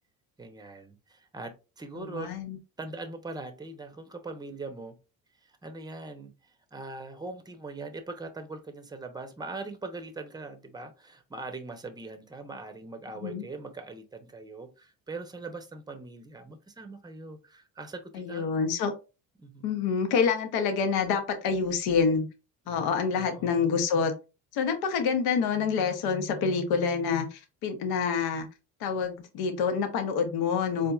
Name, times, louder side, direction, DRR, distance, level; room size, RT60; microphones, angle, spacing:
voice 1, 0.4-2.3 2.8-4.9 5.4-6.3 6.7-18.5 19.4-19.7 22.7-23.7 30.7-30.9, right 3 dB, 10° right, 0.6 m, -41 dB
voice 2, 2.0-2.6 13.2-13.4 18.1-18.9 19.6-22.3 22.7-24.1 24.5-28.5 28.8-30.9, left 5 dB, 75° left, 0.8 m, -27 dB
4.3 x 2.5 x 2.3 m
cardioid pair, 90°, 38 cm